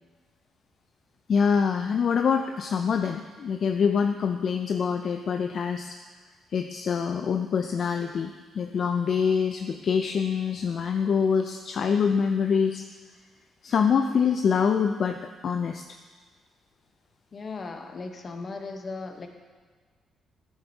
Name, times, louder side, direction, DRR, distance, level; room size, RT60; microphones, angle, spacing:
voice 1, 1.3-6.0 6.5-12.8 13.6-15.2 15.4-15.8, left 6 dB, 55° left, 5 dB, 0.4 m, -25 dB
voice 2, 17.3-19.3, left 3 dB, 40° left, 5 dB, 0.8 m, -37 dB
10.0 x 7.2 x 2.7 m, 1.4 s
cardioid pair, 90°, 0 cm